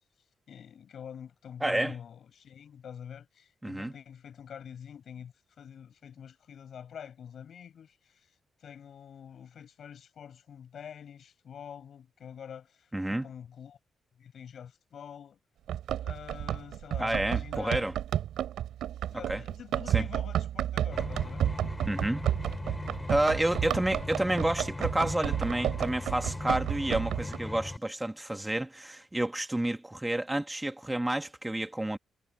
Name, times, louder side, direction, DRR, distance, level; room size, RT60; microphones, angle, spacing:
voice 1, 0.5-8.3 8.6-13.8 14.2-15.4 16.0-17.9 19.1-21.5 23.5-23.8, left 8 dB, 60° left, 7.3 m, -46 dB
voice 2, 1.6-1.9 3.6-3.9 12.9-13.3 17.0-17.9 19.3-19.4 19.9-20.0 21.8-22.2 23.1-32.0, right 1 dB, 10° right, 1.3 m, -30 dB
Run, 15.7-27.4, right 11 dB, 90° right, 4.1 m, -31 dB
sound 1, 20.9-27.8, left 2 dB, 15° left, 3.1 m, -38 dB
cardioid pair, 115°, 0 cm